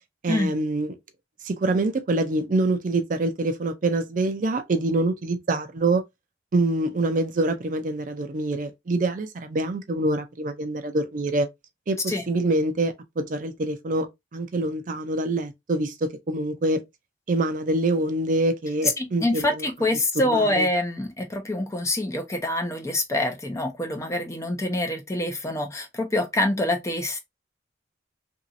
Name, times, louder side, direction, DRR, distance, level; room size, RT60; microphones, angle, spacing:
voice 1, 0.2-1.0 1.4-6.0 6.5-11.5 11.9-14.1 14.3-16.8 17.3-19.7 20.3-20.7, right 2 dB, 45° right, 0.4 m, -25 dB
voice 2, 19.0-27.2, left 1 dB, 15° left, 0.5 m, -26 dB
2.9 x 2.7 x 2.5 m
head